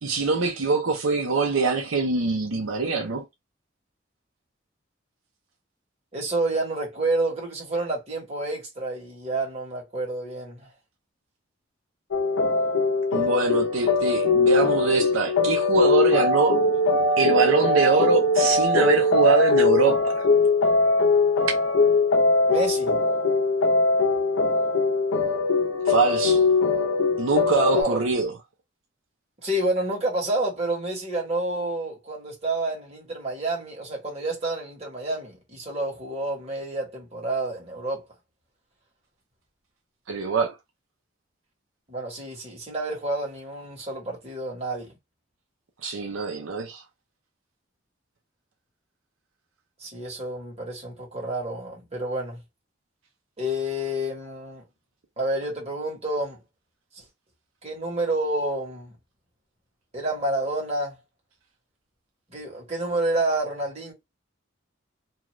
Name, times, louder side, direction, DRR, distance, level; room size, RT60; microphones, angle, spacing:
voice 1, 0.0-3.2 13.1-16.5 17.2-20.2 25.9-26.5 27.2-28.3 40.1-40.6 45.8-46.8, right 4 dB, 80° right, 0.6 m, -23 dB
voice 2, 6.1-10.7 22.5-23.0 27.7-28.0 29.4-38.1 41.9-44.9 49.8-52.4 53.4-54.6 55.2-56.4 56.9-57.0 57.6-59.0 59.9-61.0 62.3-63.9, right 2 dB, 30° right, 1.2 m, -29 dB
sound 1, 12.1-27.8, left 3 dB, 85° left, 0.6 m, -21 dB
2.5 x 2.4 x 3.0 m
head